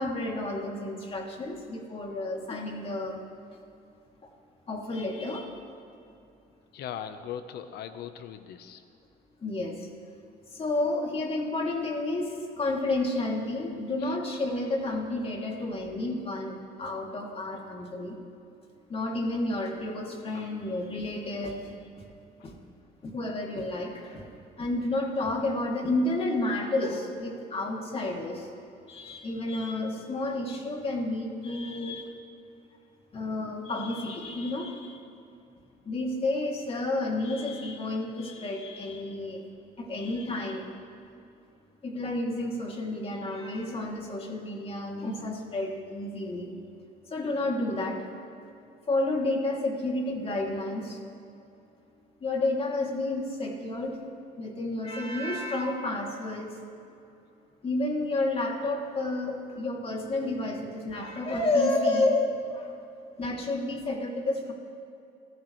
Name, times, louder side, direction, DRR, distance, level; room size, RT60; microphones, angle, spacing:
voice 1, 0.0-3.2 4.7-5.5 9.4-9.9 10.5-18.2 18.9-22.0 22.4-22.5 23.0-24.3 24.6-28.5 28.9-32.1 33.1-35.0 35.8-39.4 39.8-40.7 41.8-46.5 47.1-48.0 48.9-51.0 52.2-54.0 54.4-56.5 57.6-62.7 63.2-64.5, left 2 dB, 35° left, 0 dB, 2.9 m, -30 dB
voice 2, 6.7-8.8 14.0-14.2 22.4-22.5 32.2-32.3 33.2-33.3, left 9 dB, 75° left, 9 dB, 1.1 m, -40 dB
27.5 x 14.5 x 3.3 m, 2.7 s
cardioid pair, 110°, 17 cm